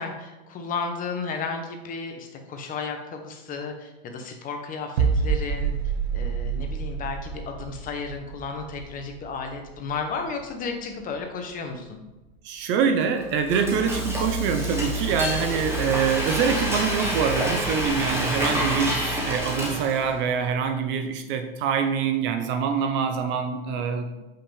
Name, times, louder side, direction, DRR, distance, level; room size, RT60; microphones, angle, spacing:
voice 1, 0.0-5.7 6.1-12.0, left 4 dB, 25° left, 4 dB, 1.0 m, -33 dB
sound 1, 5.0-10.7 10.9-11.2, right 6 dB, 75° right, 1.1 m, -28 dB
voice 2, 12.4-24.1, right 6 dB, 40° right, 7 dB, 0.7 m, -25 dB
Frying (food), 13.2-20.2, right 1 dB, 10° right, 1.4 m, -27 dB
7.2 x 5.7 x 3.5 m, 1.0 s
supercardioid pair, 135°, 31 cm